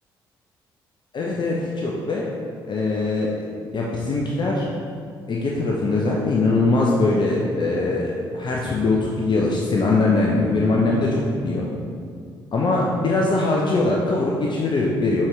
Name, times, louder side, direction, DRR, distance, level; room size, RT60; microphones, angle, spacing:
voice 1, 1.1-2.2 2.7-3.4 3.7-4.7 5.3-11.7 12.5-15.3, left 2 dB, 40° left, -3 dB, 0.8 m, -21 dB
7.2 x 4.6 x 3.2 m, 2.3 s
figure-of-eight pair, 45°, 12 cm